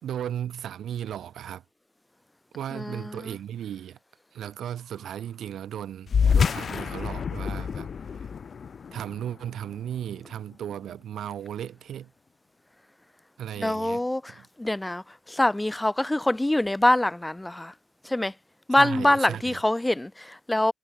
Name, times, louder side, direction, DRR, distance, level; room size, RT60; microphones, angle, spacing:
voice 1, 0.0-1.6 2.5-4.0 4.3-7.9 8.2-8.3 8.9-12.1 13.4-14.5 18.8-19.6, right 10 dB, 65° right, 4.2 m, -36 dB
voice 2, 2.7-3.3 13.6-15.0 15.3-17.7 18.0-18.3 18.7-20.7, left 1 dB, 15° left, 3.4 m, -24 dB
sound 1, 6.1-10.9, left 6 dB, 50° left, 4.1 m, -28 dB
hypercardioid pair, 45°, 0 cm